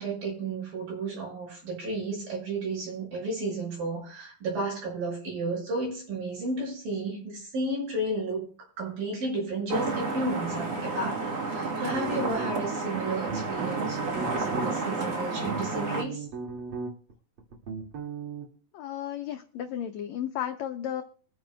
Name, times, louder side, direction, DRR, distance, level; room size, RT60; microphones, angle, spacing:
voice 1, 0.0-8.5 8.8-11.2 11.5-16.2, right 2 dB, 80° right, -2 dB, 7.9 m, -32 dB
sound 1, 9.7-16.0, right 3 dB, 60° right, 1.0 m, -31 dB
sound 2, 11.9-12.8 13.3-14.7 15.2-17.1 17.4-18.5, right 5 dB, 40° right, 2.7 m, -36 dB
voice 2, 18.7-21.0, left 10 dB, 85° left, 6 dB, 1.6 m, -33 dB
24.0 x 9.5 x 2.3 m, 0.41 s
omnidirectional pair, 4.0 m